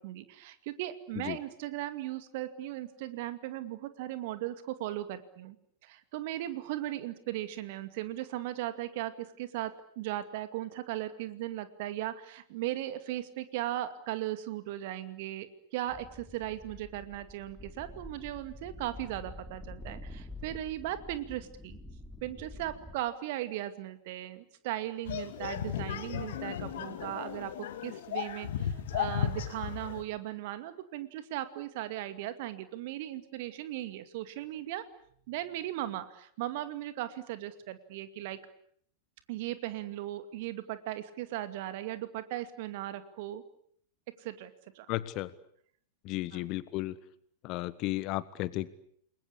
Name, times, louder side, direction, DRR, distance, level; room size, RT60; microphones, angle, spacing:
voice 1, 0.0-5.6 5.8-21.8 22.2-34.8 35.3-38.4 39.3-43.4 44.2-44.9 46.3-46.4, right 14 dB, 50° right, 11 dB, 2.3 m, -37 dB
sound 1, 15.9-23.0, left 2 dB, 5° left, 3.1 m, -47 dB
sound 2, 25.0-30.0, left 9 dB, 55° left, 2.2 m, -35 dB
voice 2, 44.9-45.3 46.0-46.9 47.4-48.7, left 17 dB, 40° left, 17 dB, 1.4 m, -34 dB
29.0 x 22.0 x 8.6 m, 0.65 s
figure-of-eight pair, 90°, 0 cm